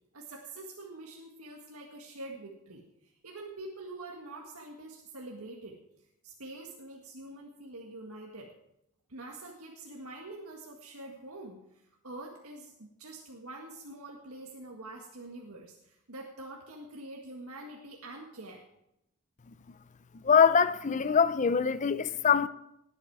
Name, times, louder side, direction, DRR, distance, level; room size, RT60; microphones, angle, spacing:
voice 1, 0.1-5.8 6.2-8.5 9.1-18.6, right 2 dB, 90° right, 1.8 m, -45 dB
voice 2, 20.2-22.5, left 6 dB, 35° left, 0.4 m, -23 dB
18.5 x 8.7 x 4.8 m
head